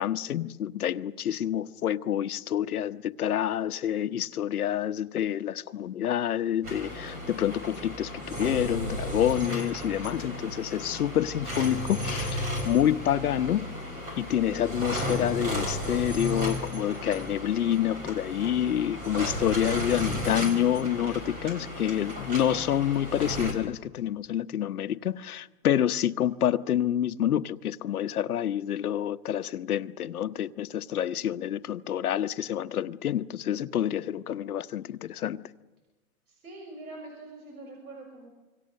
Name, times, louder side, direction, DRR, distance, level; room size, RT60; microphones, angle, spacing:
voice 1, 0.0-13.7 14.2-35.4, left 10 dB, 90° left, 1.1 m, -28 dB
sound 1, 6.6-23.5, left 1 dB, 20° right, 3.8 m, -34 dB
voice 2, 36.3-38.3, right 2 dB, 75° right, 6.5 m, -44 dB
26.0 x 24.5 x 6.6 m
hypercardioid pair, 170°, 43 cm